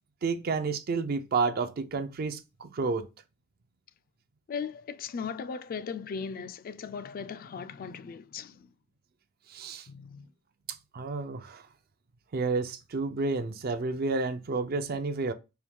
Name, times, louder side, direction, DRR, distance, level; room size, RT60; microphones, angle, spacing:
voice 1, 0.2-3.1 9.5-9.9 10.7-11.6 12.3-15.3, right 4 dB, 50° right, 0.4 m, -30 dB
voice 2, 4.5-8.7 9.9-10.3, left 6 dB, 45° left, 0.3 m, -38 dB
4.5 x 2.3 x 3.5 m
head